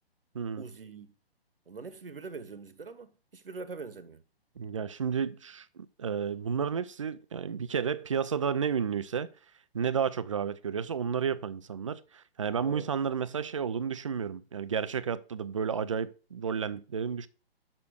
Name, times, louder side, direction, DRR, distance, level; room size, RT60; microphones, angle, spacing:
voice 1, 0.6-1.1 1.7-4.2 12.6-12.9, right 4 dB, 65° right, 1.1 m, -43 dB
voice 2, 4.6-9.3 9.7-17.3, right 7 dB, 30° right, 0.4 m, -32 dB
6.5 x 6.2 x 6.3 m
figure-of-eight pair, 130°, 31 cm